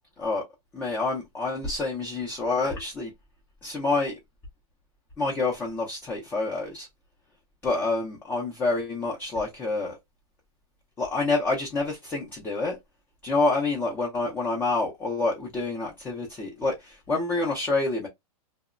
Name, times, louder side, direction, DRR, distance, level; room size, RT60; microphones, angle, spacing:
voice 1, 0.7-3.1 3.6-4.2 5.2-6.9 7.6-10.0 11.0-12.8 13.2-18.1, left 3 dB, 10° left, 0.4 m, -27 dB
2.8 x 2.0 x 2.4 m
supercardioid pair, 160°, 19 cm